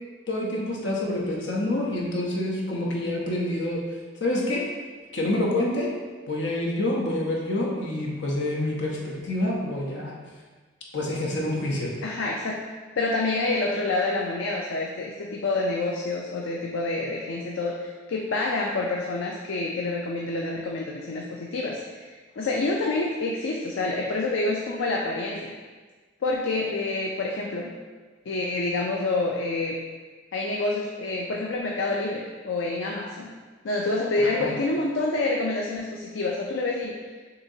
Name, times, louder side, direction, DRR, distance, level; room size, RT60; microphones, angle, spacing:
voice 1, 0.3-3.8 4.2-4.6 5.1-5.9 6.3-10.1 10.9-11.9 34.2-34.5, left 1 dB, 65° left, -2 dB, 0.9 m, -27 dB
voice 2, 12.0-12.6 13.0-25.5 26.2-27.7 28.3-29.8 30.3-33.3 33.6-37.0, left 2 dB, 85° left, -1 dB, 0.4 m, -27 dB
6.5 x 2.9 x 2.7 m, 1.4 s
head